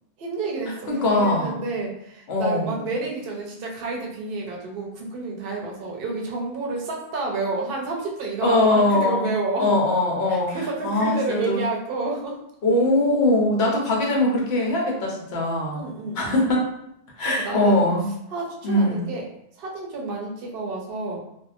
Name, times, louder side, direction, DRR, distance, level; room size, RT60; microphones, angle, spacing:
voice 1, 0.2-9.7 10.3-12.4 15.7-16.5 17.2-17.8 18.3-19.3 19.5-21.2, right 3 dB, 60° right, -1 dB, 0.8 m, -30 dB
voice 2, 0.9-1.6 2.3-2.8 8.4-9.3 9.6-10.6 10.8-11.6 12.6-15.8 16.2-16.6 17.2-18.1 18.6-19.0, left 1 dB, 70° left, -1 dB, 1.0 m, -21 dB
2.6 x 2.2 x 2.4 m, 0.77 s
omnidirectional pair, 1.2 m